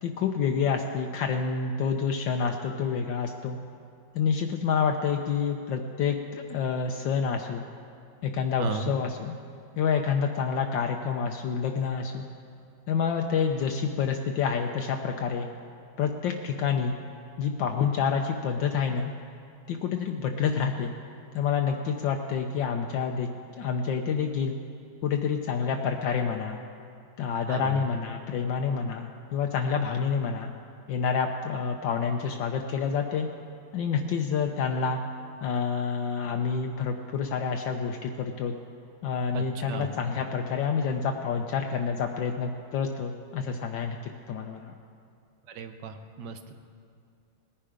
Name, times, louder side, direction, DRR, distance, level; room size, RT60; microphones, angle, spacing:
voice 1, 0.0-3.6 4.1-7.6 8.2-9.4 9.8-12.3 12.9-15.5 16.0-17.0 17.4-19.1 19.7-20.9 21.3-23.3 23.6-24.5 25.0-26.6 27.2-30.5 30.9-33.3 33.7-35.0 35.4-38.5 39.0-44.0 44.3-44.7, left 6 dB, 75° left, 3 dB, 1.3 m, -28 dB
voice 2, 8.6-8.9 27.5-27.8 39.3-39.9 45.5-46.5, right 5 dB, 65° right, 8 dB, 1.4 m, -35 dB
19.5 x 10.0 x 5.0 m, 2.4 s
omnidirectional pair, 2.2 m